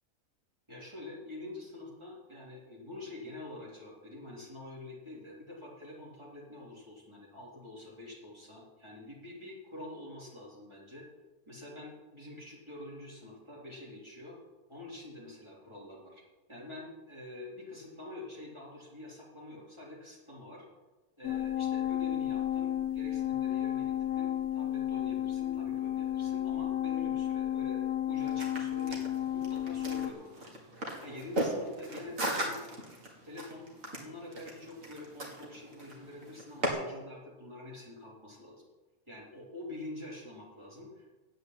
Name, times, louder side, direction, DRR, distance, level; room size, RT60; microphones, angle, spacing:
voice 1, 0.7-11.0 11.5-14.4 14.7-16.2 16.5-20.7 21.2-29.0 29.3-32.7 33.2-33.7 34.0-38.6 39.1-41.1, left 2 dB, 20° right, -5 dB, 3.9 m, -46 dB
sound 1, 21.2-30.1, left 11 dB, 85° left, 1.1 m, -32 dB
sound 2, 28.2-36.7, right 1 dB, 65° right, 2.5 m, -38 dB
9.3 x 8.0 x 8.4 m, 1.2 s
omnidirectional pair, 1.5 m